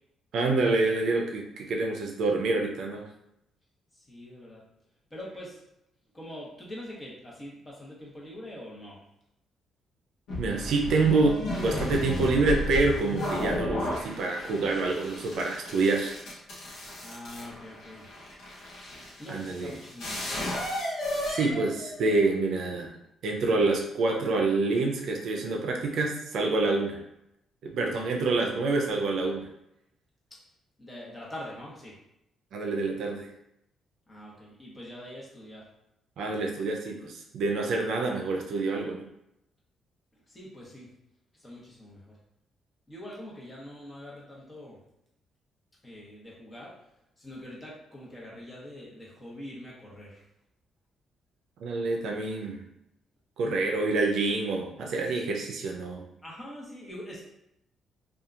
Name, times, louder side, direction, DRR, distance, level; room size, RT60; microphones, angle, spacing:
voice 1, 0.3-3.1 10.4-11.4 11.6-16.2 19.3-19.7 21.3-22.9 23.2-27.0 27.6-29.5 32.5-33.3 36.2-39.1 51.6-52.6 53.4-56.0, right 3 dB, 75° right, 1 dB, 0.5 m, -27 dB
voice 2, 3.9-4.6 5.1-5.6 6.1-9.0 17.0-18.0 19.2-20.4 30.3-30.4 30.8-32.0 34.1-35.7 40.1-40.9 41.4-42.2 42.9-44.8 45.8-46.7 47.2-50.2 56.2-57.2, left 1 dB, 20° left, -5 dB, 1.0 m, -44 dB
sound 1, 10.3-22.3, left 1 dB, 90° left, 0.9 m, -34 dB
2.8 x 2.4 x 2.4 m, 0.82 s
cardioid pair, 90°, 0 cm